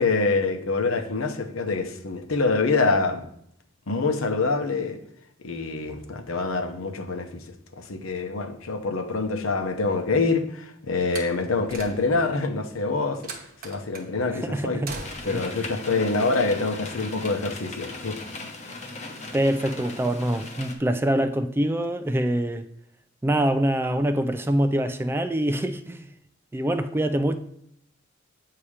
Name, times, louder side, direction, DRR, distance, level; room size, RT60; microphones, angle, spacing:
voice 1, 0.0-3.2 3.9-5.0 5.4-7.4 7.7-13.2 13.6-14.8 15.2-18.2, left 3 dB, 80° left, 0.8 m, -25 dB
Slam, 11.0-12.4 13.2-14.1 14.8-15.5, right 3 dB, 45° right, 0.9 m, -39 dB
voice 2, 14.3-14.9 15.2-15.4 19.3-22.7 23.2-26.1 26.5-27.4, right 1 dB, 10° right, 0.3 m, -25 dB
sound 1, 15.0-20.7, left 2 dB, 35° left, 0.9 m, -38 dB
8.5 x 2.9 x 4.8 m
head